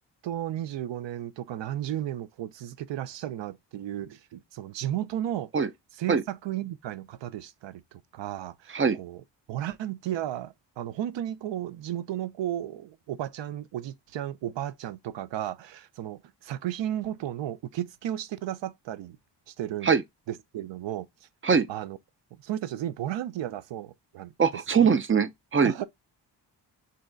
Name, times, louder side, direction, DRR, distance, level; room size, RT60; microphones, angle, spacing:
voice 1, 0.2-5.5 6.0-19.2 19.5-20.0 20.3-21.1 21.7-22.0 22.4-24.3 24.7-24.9 25.6-25.8, right 12 dB, 80° right, 0.6 m, -34 dB
voice 2, 24.4-25.7, right 6 dB, 30° right, 0.5 m, -22 dB
3.1 x 2.8 x 3.8 m
cardioid pair, 90°, 43 cm